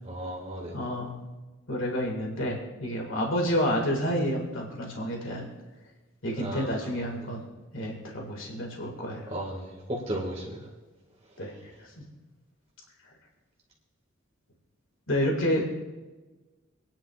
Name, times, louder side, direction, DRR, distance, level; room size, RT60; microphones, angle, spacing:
voice 1, 0.0-0.8 6.4-7.0 9.3-10.7, right 1 dB, 30° right, -3 dB, 1.9 m, -35 dB
voice 2, 0.7-1.1 1.7-5.5 6.2-7.4 7.7-9.3 11.4-11.5 15.1-15.7, equal, 75° left, 1 dB, 2.0 m, -29 dB
25.5 x 10.0 x 2.4 m, 1.2 s
head